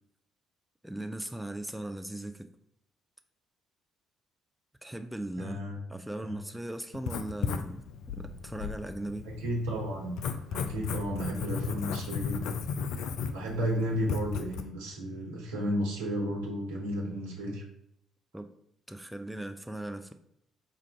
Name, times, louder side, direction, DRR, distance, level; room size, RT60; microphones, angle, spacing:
voice 1, 0.8-2.5 4.8-5.6 5.9-9.3 18.3-18.5 18.9-20.1, right 1 dB, 5° right, 7 dB, 0.4 m, -38 dB
voice 2, 5.4-5.8 9.2-10.2 10.5-12.6 13.3-17.6, equal, 80° right, -1 dB, 1.0 m, -33 dB
Writing, 6.9-14.6, left 6 dB, 70° left, 0.3 m, -35 dB
4.5 x 2.5 x 4.4 m, 0.74 s
hypercardioid pair, 50°, 0 cm